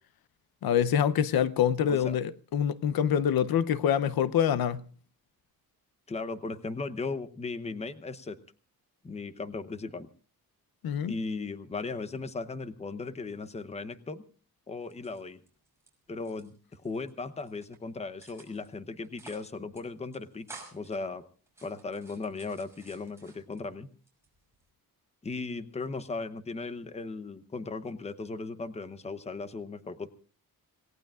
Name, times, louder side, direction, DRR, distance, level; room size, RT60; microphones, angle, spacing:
voice 1, 0.6-4.8 10.8-11.1, left 9 dB, 80° left, 0.8 m, -25 dB
voice 2, 6.1-8.4 9.0-10.1 11.1-14.2 14.7-15.4 16.1-21.3 21.6-23.9 25.2-30.1, left 3 dB, 20° left, 0.8 m, -37 dB
sound 1, 14.8-15.9 16.2-17.1 17.5-17.8 18.2-18.7 19.0-19.5 19.7-19.8 20.1-21.0 21.5-23.6 24.1-24.7, right 3 dB, 5° right, 5.9 m, -52 dB
27.0 x 18.0 x 2.4 m
wide cardioid pair, 175°, 36 cm